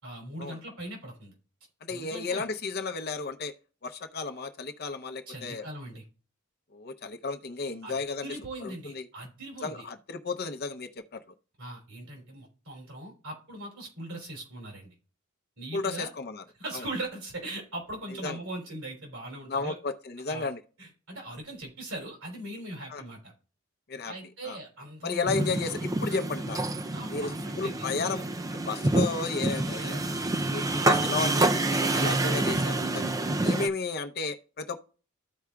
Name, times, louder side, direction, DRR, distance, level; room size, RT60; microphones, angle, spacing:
voice 1, 0.0-1.3 1.9-2.4 5.3-6.0 7.8-9.8 11.6-14.9 15.6-16.1 16.6-19.8 20.3-20.5 20.8-23.3 24.0-25.3 26.9-27.9, right 1 dB, 80° right, 3.2 m, -40 dB
voice 2, 1.8-3.5 3.8-5.7 6.7-8.3 8.6-9.1 9.6-11.2 15.7-16.4 16.7-16.9 18.2-18.4 19.5-20.6 22.9-23.0 23.9-24.1 24.4-24.6 25.0-26.6 27.1-28.2 28.5-30.0 30.4-33.1 33.4-34.8, left 4 dB, 50° left, 0.7 m, -33 dB
sound 1, 25.3-33.7, right 2 dB, 15° right, 0.4 m, -27 dB
14.5 x 4.8 x 2.3 m
head